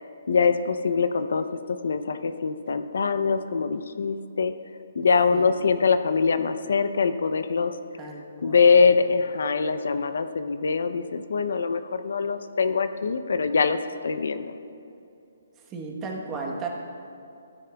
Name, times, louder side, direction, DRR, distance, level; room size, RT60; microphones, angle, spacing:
voice 1, 0.3-4.5 5.0-7.7 8.4-13.8 14.0-14.5, left 5 dB, 70° left, 10 dB, 0.5 m, -23 dB
voice 2, 8.0-8.7 15.6-16.7, right 4 dB, 15° right, 0 dB, 1.0 m, -35 dB
15.5 x 9.8 x 2.3 m, 2.6 s
hypercardioid pair, 165°, 0 cm